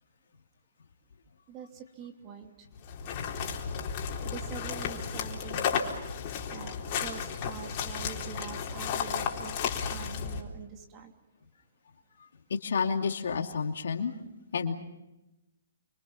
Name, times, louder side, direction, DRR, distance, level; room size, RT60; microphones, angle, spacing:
voice 1, 1.5-2.5 4.2-5.8 6.5-9.6 9.9-11.1, right 7 dB, 30° right, 2.9 m, -44 dB
sound 1, 2.7-10.4, left 7 dB, 40° left, 4.0 m, -33 dB
voice 2, 12.5-14.1 14.5-14.7, left 5 dB, 70° left, 2.8 m, -30 dB
29.0 x 25.5 x 5.8 m
hypercardioid pair, 140°, 0 cm